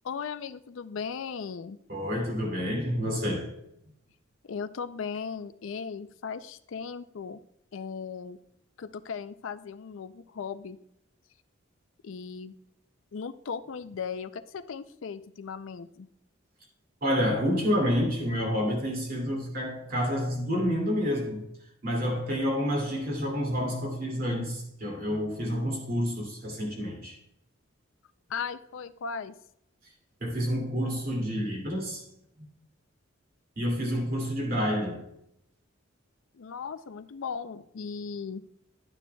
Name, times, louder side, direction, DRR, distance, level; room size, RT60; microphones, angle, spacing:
voice 1, 0.0-1.8 4.5-7.4 7.7-8.4 8.8-10.8 12.0-12.6 13.1-16.1 28.3-29.4 36.3-38.4, left 6 dB, 75° left, 0.4 m, -37 dB
voice 2, 1.9-3.6 17.0-21.4 21.8-27.2 30.2-32.0 33.6-35.0, equal, 45° right, 2.5 m, -29 dB
11.5 x 9.3 x 2.3 m
head